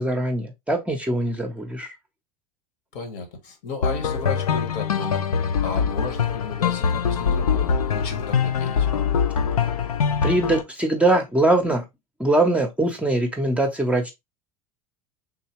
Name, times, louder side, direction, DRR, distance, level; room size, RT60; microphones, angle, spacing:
voice 1, 0.0-1.9 10.2-11.8 12.2-14.1, right 2 dB, 5° right, 0.7 m, -22 dB
voice 2, 2.9-5.3 5.6-8.9, left 4 dB, 50° left, 1.1 m, -33 dB
sound 1, 3.8-10.6, left 6 dB, 80° left, 0.4 m, -23 dB
3.6 x 2.7 x 2.9 m
figure-of-eight pair, 75°, 19 cm